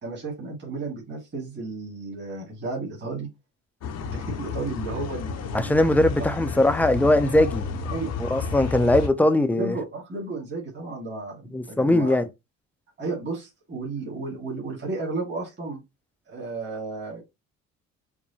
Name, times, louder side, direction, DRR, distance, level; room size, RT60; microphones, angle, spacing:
voice 1, 0.0-3.3 4.1-5.7 7.9-8.1 8.4-8.5 8.8-8.9 9.6-12.2 13.0-15.8 16.3-17.2, right 3 dB, 35° right, 1.9 m, -33 dB
sound 1, 3.8-9.1, left 6 dB, 60° left, 0.7 m, -31 dB
voice 2, 5.5-7.7 8.2-9.8 11.5-12.3, left 1 dB, 5° left, 0.4 m, -20 dB
4.8 x 2.2 x 2.7 m
cardioid pair, 90°, 30 cm